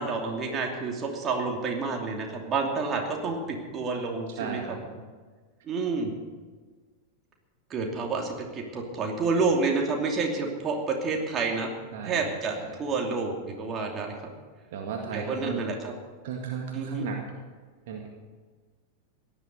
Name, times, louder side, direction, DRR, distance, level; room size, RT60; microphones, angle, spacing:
voice 1, 0.0-4.6 4.9-5.0 5.7-6.1 7.7-11.7 12.0-14.1 15.1-15.9 16.7-17.1, right 4 dB, 25° right, 1 dB, 2.7 m, -29 dB
voice 2, 4.4-4.8 11.9-12.2 12.6-12.7 14.7-15.6 16.2-17.2 17.9-18.1, right 6 dB, 50° right, 1 dB, 1.9 m, -34 dB
17.0 x 11.5 x 5.4 m, 1.5 s
figure-of-eight pair, 90°, 0 cm